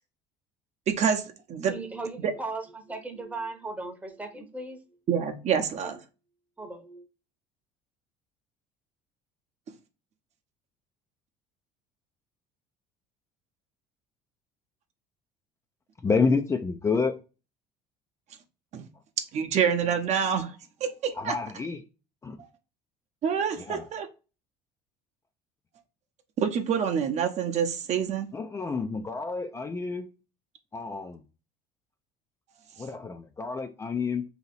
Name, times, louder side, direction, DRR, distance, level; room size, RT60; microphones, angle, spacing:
voice 1, 0.9-1.2 1.5-1.8 2.2-2.3 5.1-6.0 18.7-18.9 19.3-21.3 23.2-24.1 26.4-28.3, right 7 dB, 50° right, 0.7 m, -27 dB
voice 2, 1.7-4.8 5.8-5.9 6.6-7.1, right 3 dB, 10° right, 0.8 m, -37 dB
voice 3, 16.0-17.2 21.1-21.8 22.2-22.4 23.6-23.9 28.3-30.1 30.7-31.2 32.8-34.2, left 4 dB, 20° left, 0.3 m, -29 dB
2.8 x 2.8 x 4.1 m
cardioid pair, 110°, 15 cm